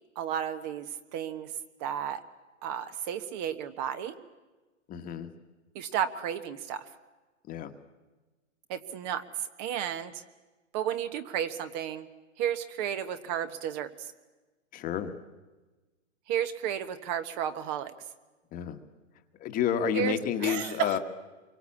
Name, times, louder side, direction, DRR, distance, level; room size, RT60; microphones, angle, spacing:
voice 1, 0.2-0.9 1.1-1.5 1.8-2.2 2.6-4.2 5.7-6.9 8.7-9.2 9.6-10.2 10.7-12.1 12.4-13.9 16.3-17.9 19.9-21.0, right 9 dB, 35° right, 10 dB, 1.3 m, -32 dB
voice 2, 4.9-5.3 7.5-7.7 14.7-15.1 18.5-18.8 19.4-21.0, left 9 dB, 20° left, 7 dB, 1.5 m, -30 dB
25.5 x 23.5 x 8.5 m, 1.2 s
hypercardioid pair, 145°, 38 cm